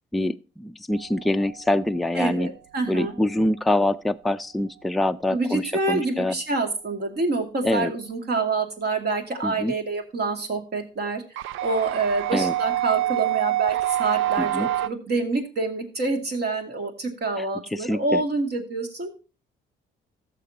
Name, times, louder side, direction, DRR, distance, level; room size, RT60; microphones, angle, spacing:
voice 1, 0.1-2.5 2.9-6.3 7.6-7.9 9.4-9.7 12.3-12.5 14.4-14.7 17.4-18.2, left 1 dB, ahead, 0.4 m, -25 dB
sound 1, 0.9-1.7 11.4-14.9, right 13 dB, 85° right, 0.4 m, -26 dB
voice 2, 2.1-3.1 5.3-19.1, right 3 dB, 55° right, 2.4 m, -27 dB
15.0 x 6.7 x 2.8 m
cardioid pair, 90°, 20 cm